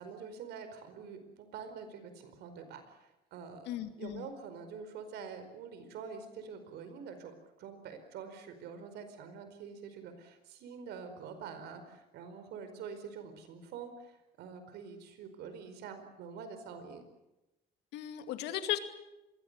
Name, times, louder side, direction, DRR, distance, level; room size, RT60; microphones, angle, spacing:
voice 1, 0.0-3.7 4.0-17.0, right 6 dB, 80° right, 9 dB, 4.9 m, -46 dB
voice 2, 3.7-4.3 17.9-18.8, left 13 dB, 85° left, 8 dB, 2.5 m, -36 dB
26.0 x 22.0 x 6.9 m, 0.96 s
cardioid pair, 110°, 17 cm